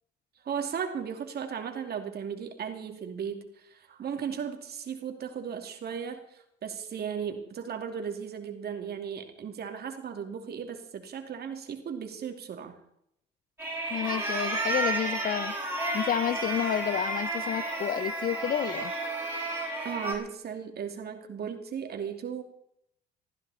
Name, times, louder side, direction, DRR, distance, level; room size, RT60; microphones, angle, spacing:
voice 1, 0.4-12.8 19.8-22.4, right 7 dB, 55° right, 5 dB, 2.8 m, -36 dB
sound 1, 13.6-20.1, right 2 dB, 10° right, 6.4 m, -32 dB
voice 2, 13.9-15.5 15.9-18.9, left 10 dB, 45° left, 17 dB, 0.5 m, -30 dB
20.0 x 14.5 x 4.3 m, 0.75 s
supercardioid pair, 75°, 20 cm